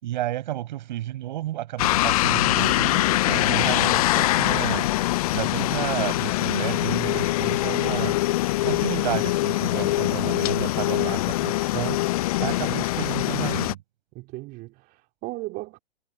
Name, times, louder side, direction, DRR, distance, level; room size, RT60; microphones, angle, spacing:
voice 1, 0.0-4.9 5.3-8.2 8.6-12.0 12.4-13.8, right 14 dB, 50° right, 7.1 m, -31 dB
sound 1, 1.8-13.7, left 17 dB, 40° left, 0.6 m, -23 dB
voice 2, 12.4-12.8 14.2-15.8, right 21 dB, 30° right, 3.6 m, -37 dB
figure-of-eight pair, 115°, 30 cm